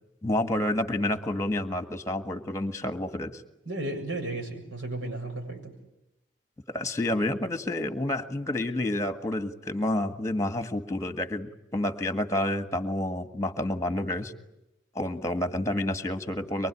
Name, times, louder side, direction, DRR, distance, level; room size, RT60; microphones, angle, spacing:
voice 1, 0.2-3.4 6.7-14.3 14.9-16.7, left 1 dB, 15° left, 9 dB, 1.8 m, -29 dB
voice 2, 3.7-5.7, right 2 dB, 80° right, 2 dB, 7.4 m, -34 dB
24.0 x 23.5 x 9.9 m, 0.89 s
head